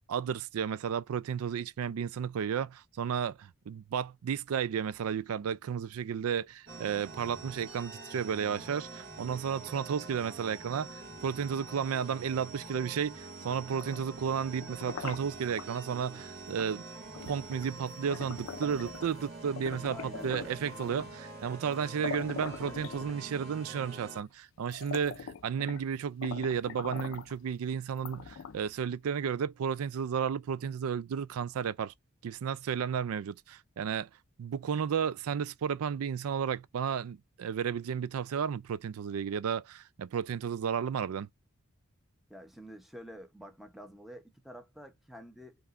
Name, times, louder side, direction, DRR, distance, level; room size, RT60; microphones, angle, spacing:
voice 1, 0.1-16.8 17.3-20.0 20.2-31.9 32.2-34.1 34.4-41.3, right 7 dB, 75° right, 0.4 m, -33 dB
sound 1, 6.7-24.2, right 2 dB, 50° right, 1.8 m, -46 dB
sound 2, 13.6-15.7 16.6-16.8 17.1-19.2 19.6-21.2 21.7-21.8 22.0-23.5 24.2-24.3 24.6-25.9 26.2-27.4 28.0-28.8, left 6 dB, 60° left, 0.4 m, -43 dB
voice 2, 19.9-20.6 42.3-45.6, equal, ahead, 0.8 m, -48 dB
5.5 x 3.0 x 2.5 m
head